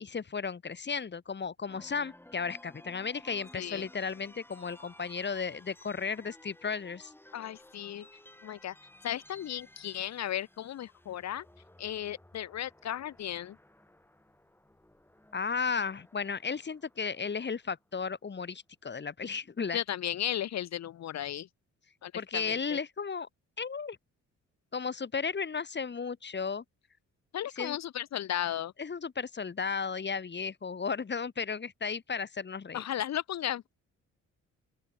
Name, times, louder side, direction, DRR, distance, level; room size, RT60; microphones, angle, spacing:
voice 1, 0.0-7.1 15.3-19.8 22.2-23.3 23.6-24.0 24.7-26.6 27.6-27.8 28.8-32.8, left 5 dB, 35° left, 4.0 m, -34 dB
sound 1, 1.7-17.9, left 1 dB, 5° left, 6.1 m, -56 dB
voice 2, 3.5-3.9 7.3-8.1 8.4-8.7 9.0-11.4 11.8-13.6 19.7-21.5 22.0-22.8 27.3-28.7 32.7-33.7, left 11 dB, 60° left, 1.3 m, -35 dB
open air
cardioid pair, 90°, 30 cm